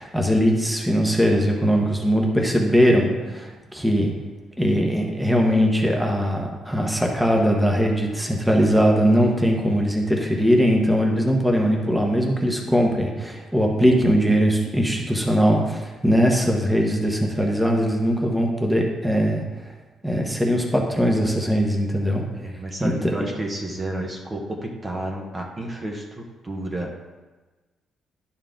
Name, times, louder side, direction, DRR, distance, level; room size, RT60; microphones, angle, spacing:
voice 1, 0.0-4.1 4.6-19.7 20.0-22.2 22.8-22.9, equal, 5° right, 0 dB, 1.2 m, -20 dB
voice 2, 22.3-26.0 26.4-26.9, right 1 dB, 30° right, 1 dB, 1.2 m, -31 dB
10.5 x 4.5 x 3.8 m, 1.2 s
cardioid pair, 90°, 0 cm